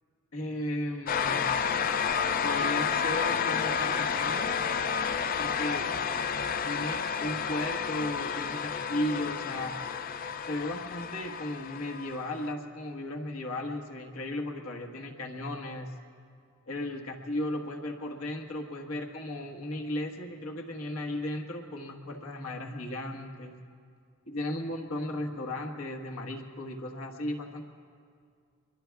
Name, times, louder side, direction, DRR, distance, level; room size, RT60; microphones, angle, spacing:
voice 1, 0.3-1.5 2.4-4.5 5.4-5.9 6.7-9.8 10.5-15.9 16.7-23.5 24.3-27.6, left 1 dB, 85° left, 2 dB, 1.4 m, -35 dB
sound 1, 1.1-12.5, left 6 dB, 40° left, 0.4 m, -30 dB
24.0 x 22.5 x 2.3 m, 2.3 s
head